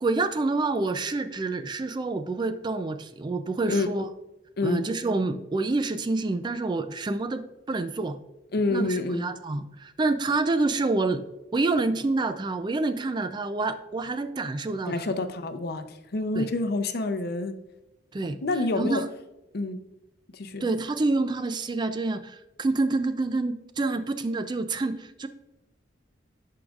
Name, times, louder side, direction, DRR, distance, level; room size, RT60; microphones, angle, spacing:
voice 1, 0.0-4.1 4.6-8.2 8.7-11.2 11.5-15.1 16.4-16.5 18.1-18.4 18.8-19.1 20.6-25.3, right 3 dB, 25° right, 10 dB, 0.3 m, -27 dB
voice 2, 8.5-9.3 14.9-17.5 18.4-19.0 19.5-19.8 20.3-20.6, left 2 dB, 55° left, 9 dB, 0.6 m, -27 dB
11.5 x 4.8 x 2.4 m, 0.98 s
head